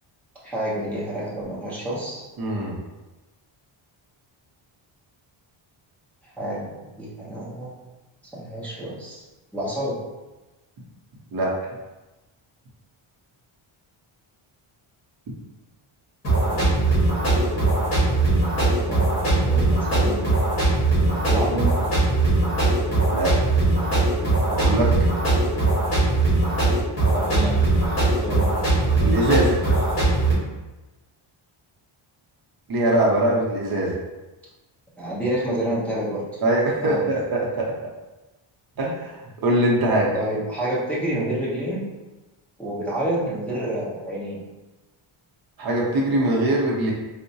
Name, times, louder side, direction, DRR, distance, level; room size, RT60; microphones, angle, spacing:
voice 1, 0.4-2.2 6.4-7.7 8.3-9.2 9.5-10.0 16.5-16.9 18.9-20.3 21.3-21.7 27.1-27.6 28.2-28.6 35.0-36.3 36.8-37.1 40.1-41.9 42.6-44.4, right 1 dB, 5° left, -8 dB, 0.6 m, -28 dB
voice 2, 2.4-2.8 11.3-11.5 23.1-23.3 24.5-24.9 29.0-29.6 32.7-33.9 36.4-37.7 38.8-40.1 45.6-46.9, right 1 dB, 45° right, -3 dB, 0.6 m, -22 dB
sound 1, 16.2-30.3, right 2 dB, 30° left, 1.4 m, -20 dB
4.5 x 2.0 x 2.7 m, 1.1 s
wide cardioid pair, 170°, 50 cm